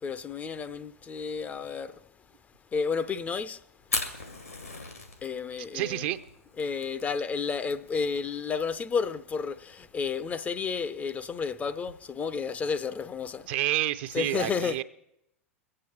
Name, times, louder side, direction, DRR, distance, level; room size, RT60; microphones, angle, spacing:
voice 1, 0.0-2.0 2.7-3.6 5.2-6.0 6.6-13.5 14.1-14.8, left 5 dB, 20° left, 0.5 m, -31 dB
Fire, 3.8-13.6, left 3 dB, 85° left, 2.0 m, -41 dB
voice 2, 5.7-6.2 13.5-14.8, right 14 dB, 45° right, 0.6 m, -29 dB
23.0 x 8.7 x 4.4 m
figure-of-eight pair, 90°, 8 cm